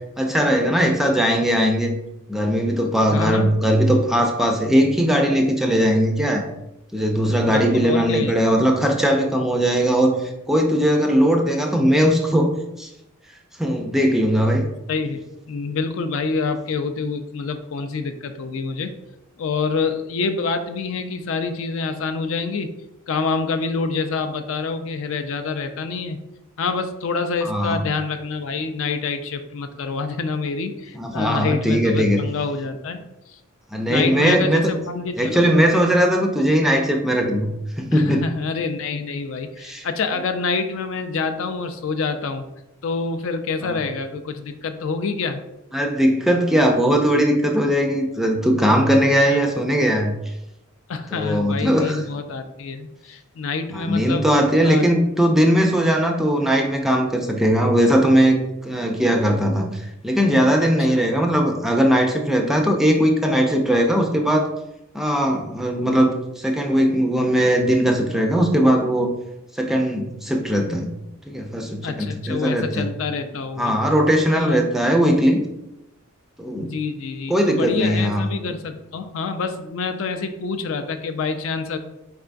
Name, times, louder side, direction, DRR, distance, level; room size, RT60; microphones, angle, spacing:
voice 1, 0.2-1.9 2.3-6.4 6.9-12.5 12.8-12.9 13.6-14.7 27.4-27.8 30.9-32.2 33.7-34.7 35.2-38.3 39.6-39.9 43.6-43.8 45.7-50.2 51.1-52.0 53.7-64.5 64.9-69.1 69.5-70.9 71.3-72.9 73.6-75.4 76.4-76.7 77.3-78.3, equal, ahead, 2 dB, 0.3 m, -19 dB
voice 2, 3.1-3.6 7.4-8.3 14.9-15.2 15.5-18.9 19.4-22.8 23.1-26.2 26.6-33.0 33.9-35.5 37.9-42.5 42.8-45.4 49.3-49.4 50.9-54.3 54.6-54.9 60.9-61.0 71.8-73.7 74.3-74.7 76.6-81.8, left 4 dB, 70° left, 8 dB, 0.4 m, -27 dB
4.5 x 3.3 x 2.5 m, 0.89 s
head